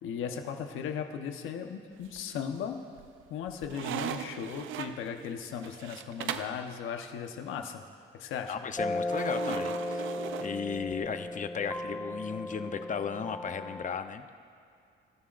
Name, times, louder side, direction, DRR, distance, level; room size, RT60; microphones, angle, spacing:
voice 1, 0.0-2.8 3.3-7.8 8.2-8.5, left 7 dB, 90° left, 5 dB, 1.1 m, -37 dB
sound 1, 2.0-2.6 3.0-6.6 9.1-11.1, right 9 dB, 80° right, 0.6 m, -39 dB
voice 2, 8.5-10.1 10.4-14.3, left 6 dB, 40° left, 9 dB, 0.8 m, -35 dB
sound 2, 8.8-14.0, left 1 dB, 10° left, 0.5 m, -35 dB
25.5 x 13.0 x 2.6 m, 2.4 s
cardioid pair, 90°, 20 cm